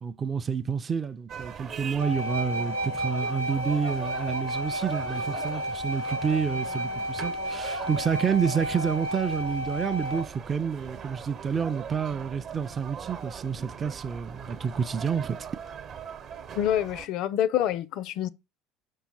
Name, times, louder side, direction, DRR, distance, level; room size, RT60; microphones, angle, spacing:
voice 1, 0.0-15.4, right 6 dB, 30° right, 0.4 m, -29 dB
sound 1, 1.3-17.1, right 7 dB, 50° right, 0.9 m, -41 dB
sound 2, 2.0-10.3, equal, 75° right, 0.6 m, -32 dB
voice 2, 16.6-18.3, left 11 dB, 50° left, 0.4 m, -26 dB
5.6 x 5.4 x 4.2 m
figure-of-eight pair, 65°, 0 cm